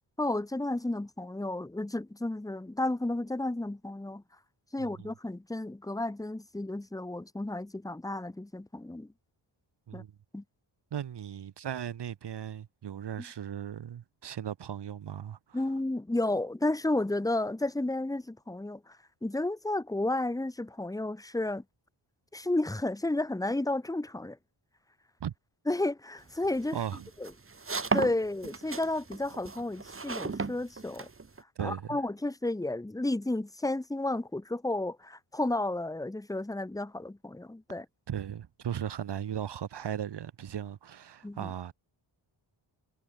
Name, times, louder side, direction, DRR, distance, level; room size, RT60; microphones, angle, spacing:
voice 1, 0.2-4.2 4.7-9.1 9.9-10.0 10.3-10.4 15.5-21.6 22.3-24.4 25.7-26.8 27.2-27.3 27.9-31.1 31.6-37.9 41.2-41.5, left 2 dB, 5° left, 1.1 m, -32 dB
voice 2, 4.8-5.1 9.9-10.1 10.9-15.6 25.2-25.3 26.7-27.1 31.6-32.0 38.1-41.7, right 9 dB, 60° right, 1.0 m, -37 dB
sound 1, 26.3-31.4, right 4 dB, 25° right, 1.9 m, -35 dB
wide cardioid pair, 100°, 48 cm